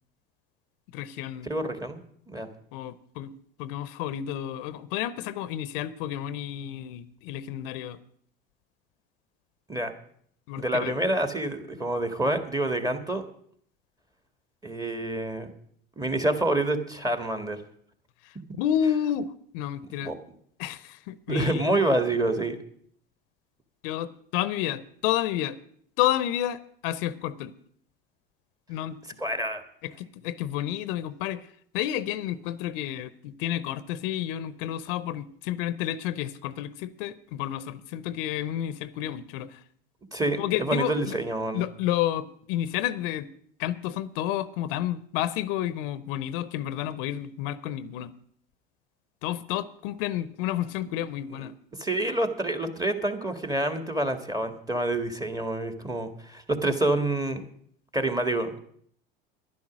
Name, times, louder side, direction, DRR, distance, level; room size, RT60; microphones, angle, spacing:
voice 1, 0.9-1.5 2.7-3.3 3.6-8.0 10.5-10.9 18.6-20.1 20.6-21.6 23.8-25.6 26.0-27.5 28.7-29.0 29.8-31.5 31.7-39.6 40.4-41.2 41.5-43.3 43.6-48.1 49.2-51.5, left 11 dB, 70° left, 16 dB, 0.8 m, -30 dB
voice 2, 1.4-2.0 2.3-2.5 9.7-9.9 10.6-13.2 14.6-15.5 16.0-17.6 20.0-20.2 21.3-22.6 29.2-29.6 40.1-41.6 51.3-51.4 51.8-57.4 57.9-58.6, right 1 dB, 10° right, 8 dB, 1.7 m, -27 dB
11.0 x 10.5 x 6.2 m, 0.63 s
hypercardioid pair, 85°, 29 cm